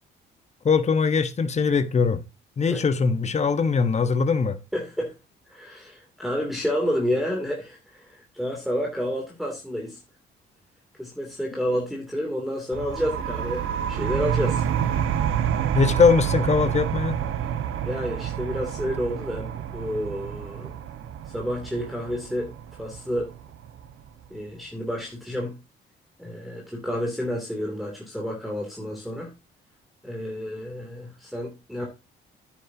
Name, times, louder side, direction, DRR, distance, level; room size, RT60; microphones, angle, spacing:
voice 1, 0.6-2.2 2.6-4.6 15.7-17.2, left 5 dB, 35° left, 1.1 m, -21 dB
voice 2, 4.7-5.1 5.5-10.0 11.0-14.6 17.4-17.5 17.8-20.7 21.3-22.5 22.8-23.3 24.3-25.6 26.2-29.3 30.0-31.9, equal, ahead, 2.8 m, -30 dB
sound 1, 12.7-24.1, right 9 dB, 85° right, 1.2 m, -28 dB
9.8 x 9.2 x 2.8 m
cardioid pair, 90°, 20 cm